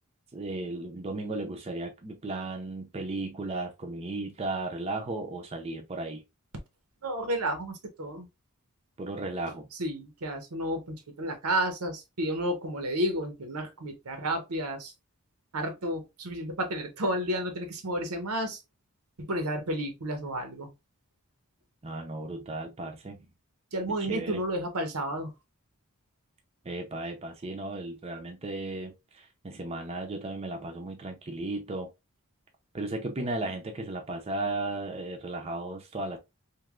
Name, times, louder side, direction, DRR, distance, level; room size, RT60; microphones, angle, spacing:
voice 1, 0.3-6.2 9.0-9.7 21.8-23.3 23.9-24.4 26.6-31.9 32.7-36.2, right 2 dB, 25° right, 0.5 m, -35 dB
voice 2, 7.0-8.3 9.8-14.9 15.5-18.6 19.2-20.7 23.7-25.3, right 1 dB, 85° right, 0.8 m, -31 dB
3.2 x 2.6 x 2.4 m
head